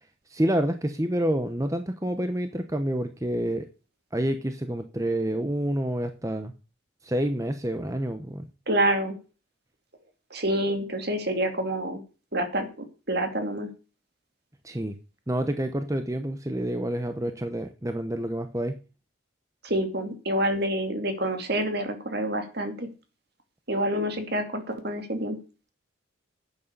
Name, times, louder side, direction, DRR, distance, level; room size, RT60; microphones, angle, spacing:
voice 1, 0.3-3.7 4.1-6.5 7.0-8.5 14.6-15.0 15.3-18.8, right 1 dB, 15° right, 8 dB, 0.9 m, -28 dB
voice 2, 8.7-9.2 10.3-12.0 12.3-12.7 13.1-13.7 19.6-22.9 23.7-25.4, right 1 dB, 50° right, 7 dB, 2.7 m, -27 dB
11.0 x 8.5 x 6.8 m, 0.33 s
head